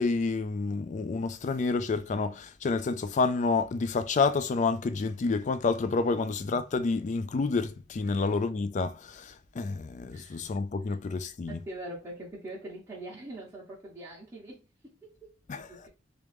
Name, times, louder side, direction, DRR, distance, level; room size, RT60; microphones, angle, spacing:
voice 1, 0.0-11.6 15.5-15.9, left 4 dB, 40° left, 0.3 m, -29 dB
voice 2, 10.1-10.4 10.8-11.0 11.5-15.9, right 1 dB, 15° right, 0.9 m, -44 dB
3.1 x 2.5 x 3.4 m
head